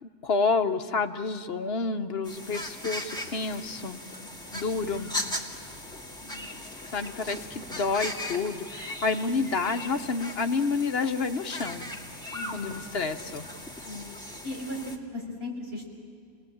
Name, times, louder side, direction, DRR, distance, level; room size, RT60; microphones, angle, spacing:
voice 1, 0.0-4.0 4.5-5.1 6.9-11.9 12.5-13.5, left 4 dB, 60° left, 8 dB, 1.2 m, -29 dB
sound 1, 2.2-15.0, left 1 dB, 5° left, 2.1 m, -38 dB
voice 2, 6.2-6.6 12.3-12.7 13.8-14.0 14.4-15.9, left 1 dB, 65° right, -2 dB, 5.6 m, -37 dB
29.5 x 19.5 x 8.7 m, 2.2 s
omnidirectional pair, 1.2 m